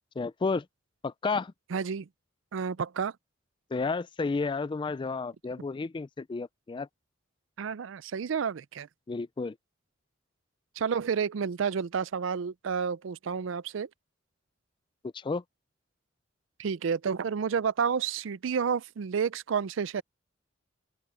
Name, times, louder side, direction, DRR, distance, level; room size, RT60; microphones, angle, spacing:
voice 1, 0.2-0.7 1.0-1.5 3.7-6.9 9.1-9.6 15.1-15.4, left 4 dB, 25° left, 0.3 m, -31 dB
voice 2, 1.7-2.1 2.5-3.1 7.6-8.9 10.8-13.9 16.6-20.0, right 6 dB, 70° right, 0.4 m, -30 dB
open air
head